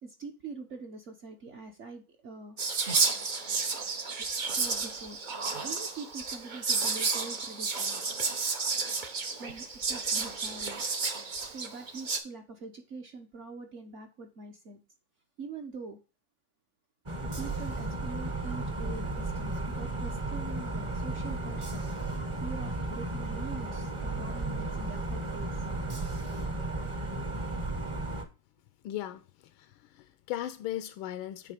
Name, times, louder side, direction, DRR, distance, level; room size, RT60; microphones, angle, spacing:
voice 1, 0.0-2.6 4.5-5.2 5.6-8.1 9.4-10.8 11.5-14.8 15.4-16.0 17.2-21.9 22.4-25.6, right 4 dB, 50° right, 0.9 m, -44 dB
Whispering, 2.6-12.2, right 4 dB, 80° right, 0.4 m, -31 dB
sound 1, 17.1-28.2, right 2 dB, 25° right, 0.6 m, -34 dB
voice 2, 28.8-29.2 29.9-31.5, left 13 dB, 85° left, 1.4 m, -36 dB
8.6 x 3.4 x 5.1 m
omnidirectional pair, 2.2 m